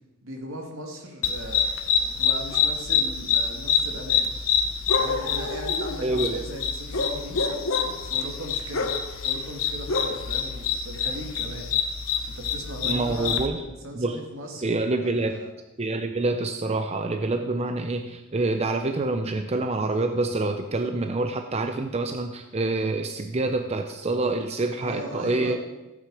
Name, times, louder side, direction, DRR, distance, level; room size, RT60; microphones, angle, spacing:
voice 1, 0.2-4.3 5.0-7.4 8.0-8.9 9.2-11.7 12.3-14.8 15.1-15.5 24.7-25.6, equal, 75° right, 2 dB, 2.3 m, -38 dB
sound 1, 1.2-13.5, left 6 dB, 80° left, 1.2 m, -26 dB
voice 2, 6.0-6.4 12.8-13.6 13.9-14.2 14.6-15.4 15.8-25.6, right 2 dB, 30° right, 7 dB, 0.6 m, -26 dB
15.5 x 8.7 x 4.8 m, 1.0 s
head